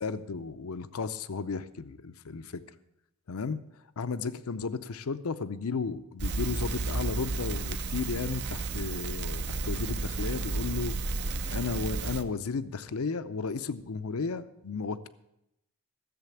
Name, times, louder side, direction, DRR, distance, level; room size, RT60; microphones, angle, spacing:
voice 1, 0.0-2.6 3.3-3.6 4.0-10.9 11.5-15.1, left 4 dB, 85° left, 13 dB, 0.6 m, -34 dB
Crackle, 6.2-12.2, right 3 dB, 55° right, 0.6 m, -32 dB
14.5 x 7.5 x 7.1 m, 0.84 s
head